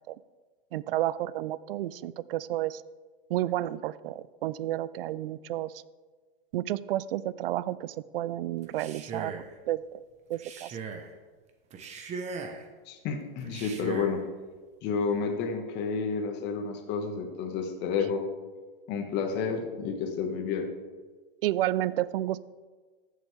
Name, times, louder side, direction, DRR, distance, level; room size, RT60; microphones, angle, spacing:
voice 1, 0.7-2.8 3.3-5.7 6.5-10.0 10.3-10.8 21.4-22.4, right 14 dB, 70° right, 19 dB, 0.5 m, -31 dB
Male speech man speaking, 8.6-9.5 10.3-11.1 11.7-12.7 13.4-14.2, right 4 dB, 25° right, 1.0 m, -39 dB
voice 2, 12.9-14.2 14.8-18.2 18.9-20.7, left 5 dB, 35° left, 4 dB, 1.5 m, -30 dB
15.0 x 7.3 x 3.4 m, 1.4 s
hypercardioid pair, 135°, 29 cm